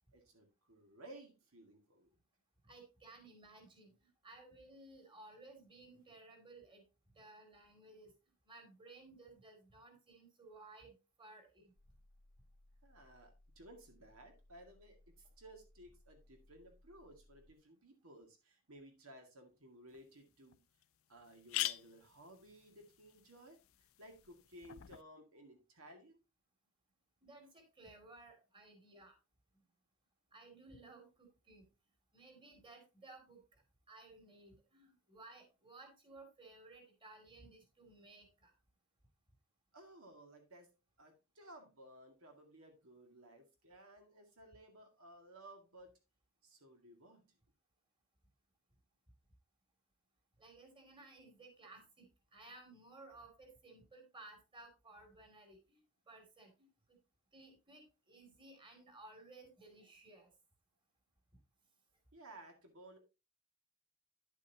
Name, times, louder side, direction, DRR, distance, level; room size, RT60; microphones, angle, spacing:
voice 1, 0.1-2.1 12.8-20.6 21.1-26.2 39.7-40.7 41.0-46.0 46.4-47.4 62.1-63.0, right 1 dB, 70° right, 3 dB, 2.1 m, -58 dB
voice 2, 2.6-6.8 7.1-8.1 8.4-11.7 27.2-29.1 30.3-31.7 32.1-38.5 50.4-55.8 56.1-57.0 57.3-60.3, right 2 dB, 20° right, 5 dB, 2.5 m, -58 dB
sound 1, 11.8-17.5, left 1 dB, 40° left, 1.0 m, -66 dB
sound 2, 19.9-20.0 20.5-20.6 20.8-20.9 21.2-25.0, left 15 dB, 65° left, 0.5 m, -44 dB
10.0 x 8.1 x 2.8 m, 0.28 s
head